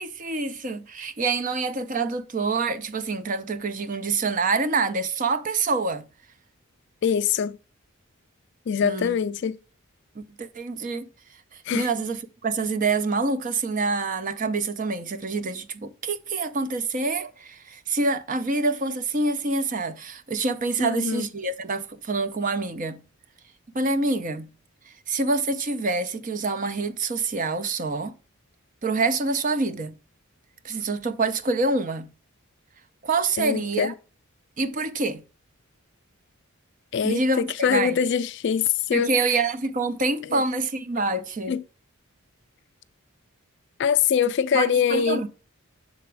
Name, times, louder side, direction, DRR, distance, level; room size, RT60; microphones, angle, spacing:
voice 1, 0.0-6.1 8.8-9.2 10.2-11.1 11.5-23.0 23.7-24.5 24.9-28.1 28.8-30.0 30.6-32.1 33.0-33.9 34.6-35.2 37.0-38.0 38.9-41.6 44.5-45.3, right 3 dB, 35° right, 0.5 m, -26 dB
voice 2, 7.0-7.6 8.7-9.6 11.7-11.9 20.8-21.3 33.4-33.9 36.9-39.1 40.3-40.4 41.5-41.6 43.8-45.3, left 7 dB, 55° left, 0.3 m, -23 dB
6.8 x 4.0 x 4.6 m
head